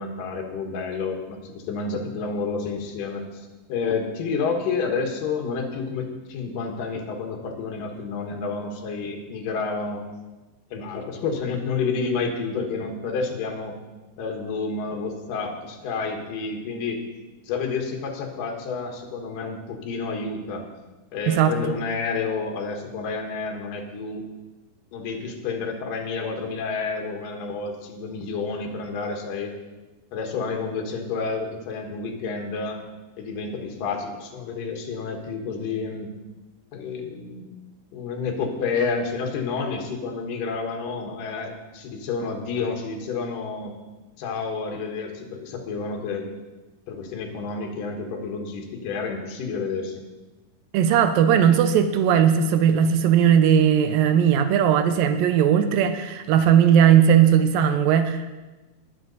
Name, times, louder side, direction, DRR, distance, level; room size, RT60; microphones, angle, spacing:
voice 1, 0.0-10.0 10.7-13.8 14.2-17.0 17.4-20.7 21.1-24.2 24.9-29.5 30.1-32.8 33.2-36.1 36.7-37.5 37.9-43.7 44.2-46.3 46.9-49.9, left 4 dB, 70° left, 2 dB, 3.0 m, -30 dB
voice 2, 50.7-58.3, right 8 dB, 85° right, 9 dB, 2.4 m, -18 dB
20.0 x 7.6 x 4.0 m, 1.1 s
omnidirectional pair, 4.1 m